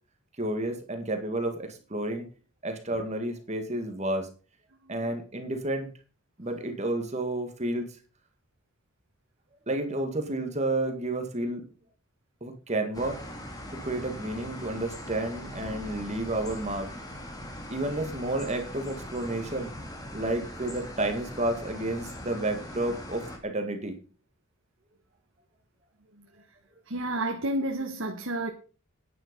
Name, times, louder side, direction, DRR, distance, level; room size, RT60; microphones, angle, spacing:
voice 1, 0.4-2.3 2.6-4.3 4.9-5.9 6.4-8.0 9.7-11.6 12.4-13.2 13.7-16.9 17.7-19.7 20.1-24.0, right 1 dB, 35° right, 1.9 m, -31 dB
sound 1, 12.9-23.4, left 1 dB, 20° left, 2.6 m, -41 dB
voice 2, 26.9-28.5, right 1 dB, 70° right, 1.4 m, -31 dB
10.5 x 9.9 x 5.3 m
head